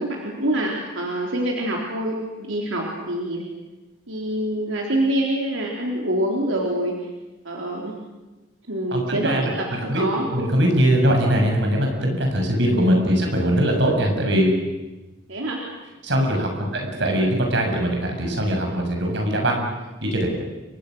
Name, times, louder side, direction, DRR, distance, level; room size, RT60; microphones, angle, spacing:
voice 1, 0.0-3.4 4.1-6.9 7.4-7.9 8.7-10.3 12.7-13.0 15.3-15.6, right 1 dB, 85° right, -1 dB, 3.9 m, -26 dB
voice 2, 8.9-14.5 16.0-19.7 20.0-20.3, equal, 60° right, 2 dB, 6.7 m, -21 dB
30.0 x 24.5 x 6.4 m, 1.1 s
head